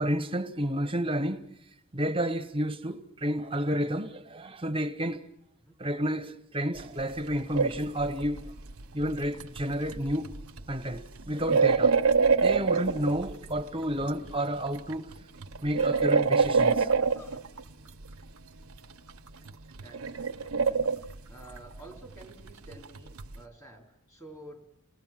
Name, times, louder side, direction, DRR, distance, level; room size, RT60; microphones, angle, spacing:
voice 1, 0.0-1.4 1.9-5.2 5.8-8.5 8.9-10.3 10.7-12.0 12.4-15.1 15.6-16.9, equal, 25° right, 1.1 m, -30 dB
sound 1, 6.8-6.9 7.1-14.3 14.7-18.3 18.8-23.4, right 5 dB, 85° right, 0.9 m, -26 dB
voice 2, 17.0-17.4 19.7-24.6, right 1 dB, 15° left, 3.9 m, -51 dB
28.5 x 19.0 x 7.5 m
head